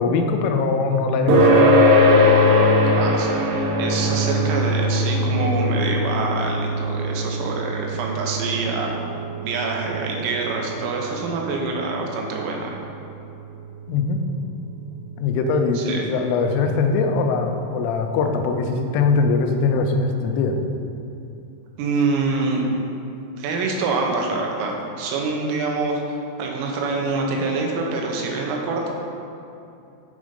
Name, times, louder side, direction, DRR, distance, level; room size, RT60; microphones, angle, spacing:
voice 1, 0.0-1.5 13.9-14.2 15.2-20.6, left 4 dB, 85° left, 5 dB, 3.2 m, -21 dB
sound 1, 1.3-16.2, left 1 dB, 75° right, 2.7 m, -22 dB
voice 2, 2.9-8.9 9.4-12.8 15.8-16.1 21.8-22.7 23.4-26.0 26.4-28.9, right 3 dB, 90° right, 0 dB, 3.6 m, -25 dB
11.0 x 4.1 x 5.0 m, 2.7 s
omnidirectional pair, 5.7 m